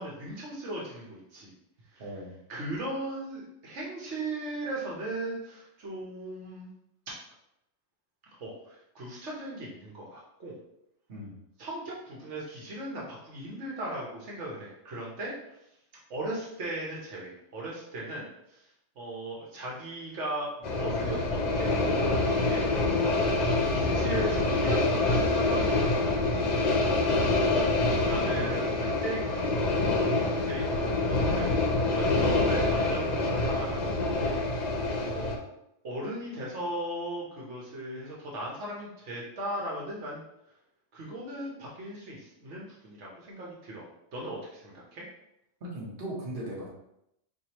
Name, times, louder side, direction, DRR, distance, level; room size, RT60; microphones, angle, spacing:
voice 1, 0.0-1.5 1.9-2.0 2.5-6.7 7.1-7.2 8.3-10.5 11.6-15.6 16.1-18.7 19.0-23.1 23.7-26.2 27.4-27.6 28.0-29.5 29.9-31.5 31.9-35.3 35.8-40.2 40.9-43.8 44.1-45.0, right 1 dB, 80° right, -4 dB, 1.2 m, -38 dB
voice 2, 2.0-2.3 11.1-11.3 45.6-46.7, right 1 dB, 50° right, -5 dB, 1.2 m, -38 dB
sound 1, 20.6-35.4, left 2 dB, 50° left, 0.6 m, -26 dB
4.6 x 2.6 x 2.9 m, 0.81 s
omnidirectional pair, 1.2 m